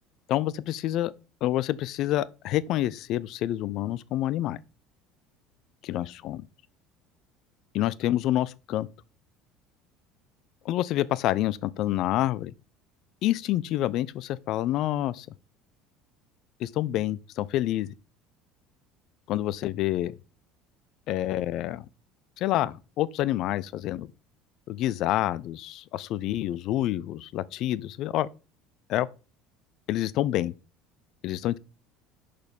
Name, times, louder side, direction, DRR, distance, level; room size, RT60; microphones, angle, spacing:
voice 1, 0.3-1.1 1.4-4.6 5.8-6.4 7.7-8.9 10.6-12.5 13.2-15.3 16.6-17.9 19.3-20.1 21.1-21.9 22.4-24.1 24.7-28.3 28.9-29.1 29.9-30.5 31.2-31.6, left 14 dB, 55° left, 0.4 m, -27 dB
6.4 x 5.1 x 5.3 m
figure-of-eight pair, 65°, 0 cm